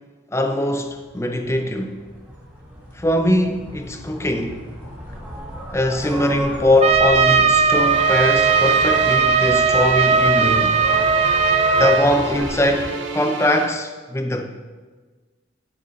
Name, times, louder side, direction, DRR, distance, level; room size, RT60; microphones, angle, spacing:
voice 1, 0.3-2.0 2.9-4.6 5.7-10.8 11.8-14.5, left 1 dB, 15° left, 5 dB, 0.6 m, -21 dB
sound 1, 0.8-12.9, equal, 10° right, 1.6 m, -35 dB
Trumpet, 6.8-12.1, right 5 dB, 30° right, 0.4 m, -17 dB
sound 2, 7.7-13.7, right 3 dB, 65° right, 0.7 m, -32 dB
12.0 x 6.0 x 3.8 m, 1.4 s
head